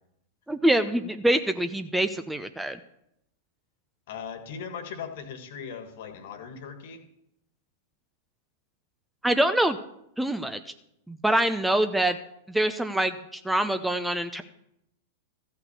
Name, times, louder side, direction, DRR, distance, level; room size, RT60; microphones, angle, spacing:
voice 1, 0.5-2.8 9.2-9.8 10.2-10.6 11.1-12.2 12.5-14.4, right 1 dB, 5° right, 9 dB, 0.6 m, -25 dB
voice 2, 4.1-7.0, left 6 dB, 55° left, 8 dB, 1.7 m, -39 dB
14.0 x 5.8 x 6.9 m, 0.79 s
figure-of-eight pair, 100°, 0 cm